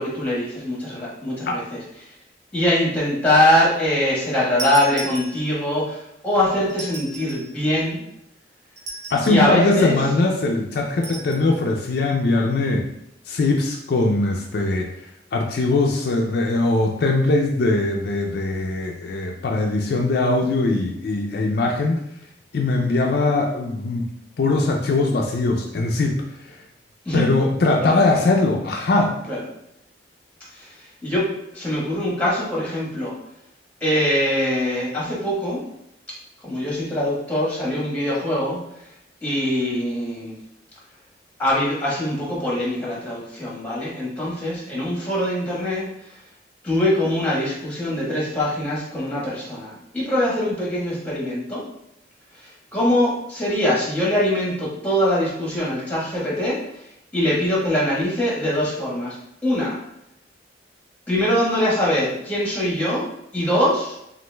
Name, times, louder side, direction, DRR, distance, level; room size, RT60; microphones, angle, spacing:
voice 1, 0.0-2.1 2.5-8.0 9.2-10.0 27.0-27.2 27.7-28.0 29.3-29.4 30.5-31.3 31.5-33.1 33.8-35.6 36.4-38.6 39.2-40.4 41.4-45.9 46.6-51.6 52.4-56.6 57.1-59.1 59.4-59.8 61.1-63.1 63.3-64.0, left 1 dB, 10° left, -6 dB, 1.3 m, -23 dB
sound 1, 4.6-5.7 6.7-7.5 8.8-9.5 11.0-11.5, right 2 dB, 85° right, 0.9 m, -35 dB
voice 2, 9.1-12.9 13.3-22.0 22.5-24.1 24.4-26.6 27.1-29.2, left 2 dB, 60° left, 1 dB, 0.4 m, -21 dB
5.9 x 2.5 x 2.2 m, 0.79 s
head